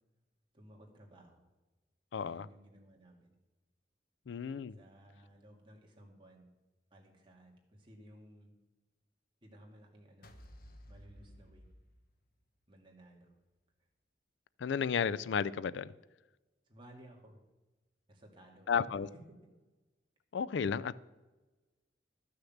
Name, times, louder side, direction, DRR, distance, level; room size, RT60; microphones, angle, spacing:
voice 1, 0.5-1.4 2.2-3.3 4.8-6.5 6.9-8.5 9.4-10.3 10.9-11.6 12.7-13.3 16.7-17.4 18.1-18.8 19.1-19.2, right 1 dB, 25° right, 0 dB, 2.2 m, -57 dB
voice 2, 2.1-2.5 4.3-4.8 14.6-15.9 18.7-19.1 20.3-21.0, left 6 dB, 75° left, 18 dB, 0.4 m, -33 dB
sound 1, 10.2-12.6, equal, 50° left, 1.1 m, -55 dB
13.0 x 6.6 x 7.2 m, 1.1 s
head